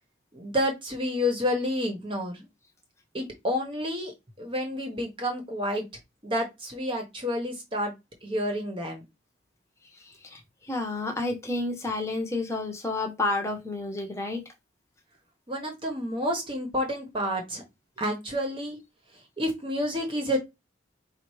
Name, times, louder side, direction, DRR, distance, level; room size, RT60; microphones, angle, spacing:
voice 1, 0.3-2.5 3.1-4.1 4.4-5.8 6.2-7.9 8.2-9.0 15.5-17.6 18.0-18.8 19.4-20.4, left 1 dB, 25° right, 2 dB, 1.0 m, -29 dB
voice 2, 10.7-14.4, left 2 dB, 15° left, 3 dB, 1.0 m, -30 dB
4.2 x 2.5 x 4.7 m, 0.22 s
head